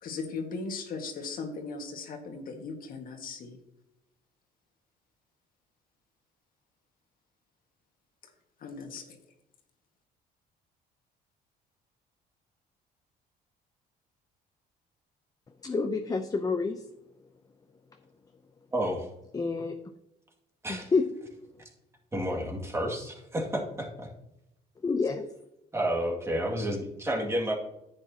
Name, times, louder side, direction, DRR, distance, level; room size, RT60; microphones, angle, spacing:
voice 1, 0.0-3.6 8.6-9.2, left 4 dB, 55° left, 1.8 m, -38 dB
voice 2, 15.6-16.8 19.3-19.8 20.7-21.1 24.8-25.3, left 4 dB, 20° left, 0.6 m, -28 dB
voice 3, 18.7-19.1 20.6-20.9 22.1-24.1 25.7-27.6, equal, 15° right, 2.2 m, -30 dB
10.5 x 8.7 x 2.9 m
cardioid pair, 110°, 17 cm